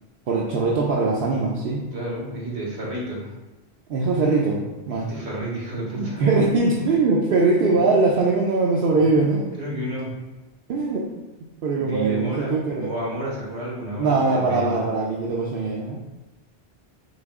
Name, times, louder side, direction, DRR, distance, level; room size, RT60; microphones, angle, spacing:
voice 1, 0.3-1.8 3.9-4.6 4.9-5.1 6.0-9.4 10.7-11.0 11.6-12.9 14.0-16.0, right 3 dB, 65° right, -3 dB, 0.7 m, -21 dB
voice 2, 1.9-3.3 4.9-6.2 9.6-10.1 11.8-14.9, right 1 dB, 90° right, -4 dB, 1.6 m, -30 dB
4.0 x 2.8 x 3.5 m, 1.1 s
omnidirectional pair, 1.1 m